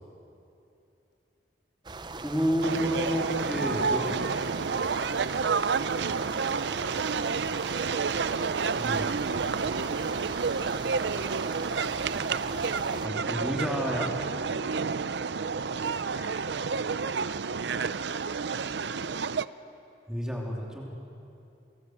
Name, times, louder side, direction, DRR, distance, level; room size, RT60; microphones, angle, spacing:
sound 1, 1.8-13.1, right 3 dB, 25° right, 0.7 m, -40 dB
voice 1, 2.2-4.2 8.7-9.2 13.0-14.3 20.1-20.8, equal, 5° right, -2 dB, 3.2 m, -30 dB
sound 2, 2.6-19.4, right 5 dB, 75° right, 0.6 m, -30 dB
voice 2, 4.9-5.6 6.1-8.6 10.4-12.0 15.8-16.9 17.2-19.3, left 1 dB, 90° left, 0 dB, 6.5 m, -51 dB
29.5 x 20.5 x 7.9 m, 2.8 s
head